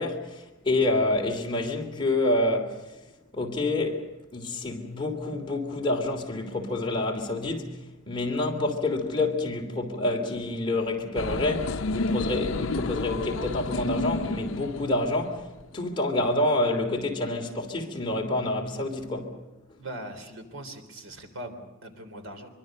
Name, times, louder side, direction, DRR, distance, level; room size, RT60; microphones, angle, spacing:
voice 1, 0.0-2.9 3.3-4.1 4.3-7.8 8.0-15.5 15.7-19.3, left 2 dB, 25° left, 3.0 m, -28 dB
sound 1, 11.1-15.6, left 3 dB, 80° left, 0.7 m, -31 dB
voice 2, 19.8-22.5, right 1 dB, 80° right, 3.5 m, -40 dB
24.5 x 23.0 x 6.5 m
head